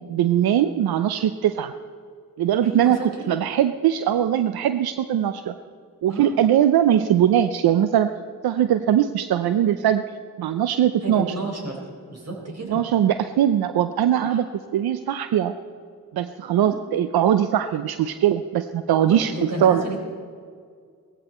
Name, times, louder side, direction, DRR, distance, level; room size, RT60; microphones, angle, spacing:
voice 1, 0.1-1.7 2.4-5.5 6.0-8.1 8.4-10.0 10.4-11.3 12.7-14.4 14.7-15.5 16.1-19.8, right 10 dB, 85° right, 11 dB, 0.6 m, -21 dB
voice 2, 2.6-3.3 6.1-6.4 11.0-11.8 12.1-12.8 14.3-14.4 16.6-16.8 19.0-20.0, right 2 dB, 45° right, 1 dB, 4.5 m, -31 dB
18.0 x 15.0 x 4.3 m, 2.1 s
cardioid pair, 55°, 36 cm